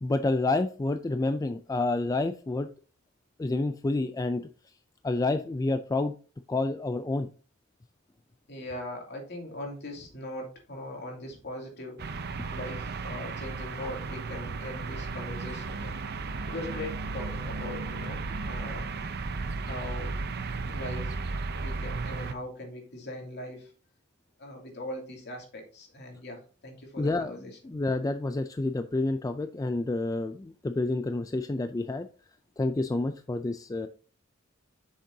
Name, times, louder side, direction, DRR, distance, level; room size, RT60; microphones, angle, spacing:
voice 1, 0.0-2.7 3.4-4.4 5.0-6.1 6.5-7.3 12.4-12.5 27.0-27.4 27.6-32.1 32.6-33.9, left 2 dB, 20° left, 8 dB, 0.3 m, -29 dB
voice 2, 8.5-12.0 12.5-16.0 16.5-19.0 19.6-20.1 20.7-21.2 21.5-23.7 24.4-27.6, left 1 dB, 55° left, 0 dB, 2.7 m, -40 dB
sound 1, 12.0-22.3, right 4 dB, 55° right, 0.7 m, -34 dB
8.2 x 6.5 x 2.7 m, 0.37 s
head